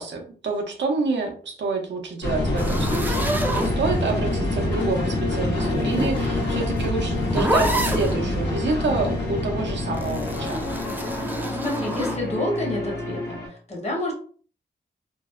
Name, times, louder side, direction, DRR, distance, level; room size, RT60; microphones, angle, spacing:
voice 1, 0.0-10.6, right 3 dB, 90° right, 2 dB, 0.6 m, -28 dB
sound 1, 2.2-13.5, left 2 dB, 85° left, 0.9 m, -26 dB
sound 2, 2.6-4.3 5.5-8.2 9.9-12.2, right 1 dB, 10° right, 0.3 m, -28 dB
voice 2, 11.5-14.1, left 1 dB, 40° left, 0 dB, 0.9 m, -29 dB
2.5 x 2.0 x 2.4 m, 0.43 s
wide cardioid pair, 90°, 18 cm